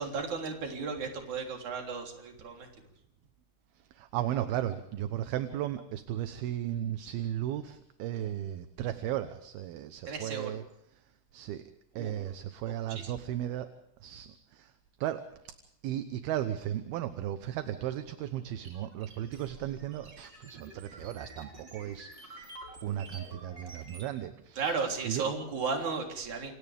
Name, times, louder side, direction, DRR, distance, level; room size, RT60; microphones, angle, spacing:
voice 1, 0.0-2.7 10.1-10.6 12.0-12.1 12.9-13.1 24.6-26.5, right 4 dB, 45° right, 2 dB, 4.6 m, -34 dB
voice 2, 3.9-10.6 11.3-11.6 12.0-13.7 14.0-14.7 15.0-15.3 15.8-22.6 22.8-24.6 25.0-25.2, right 12 dB, 70° right, 9 dB, 2.7 m, -35 dB
sound 1, 18.6-24.1, right 2 dB, 25° right, 5.4 m, -49 dB
28.0 x 27.5 x 3.5 m, 0.77 s
omnidirectional pair, 5.0 m